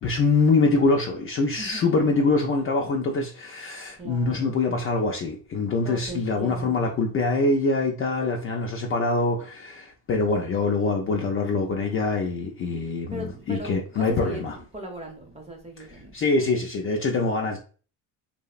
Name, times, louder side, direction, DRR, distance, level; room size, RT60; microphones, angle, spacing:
voice 1, 0.0-14.6 15.9-17.6, left 3 dB, 35° left, 0.4 m, -24 dB
voice 2, 1.5-2.3 4.0-4.6 5.8-7.0 13.1-16.2, right 1 dB, 15° right, 0.6 m, -39 dB
2.7 x 2.0 x 2.3 m
supercardioid pair, 95°, 41 cm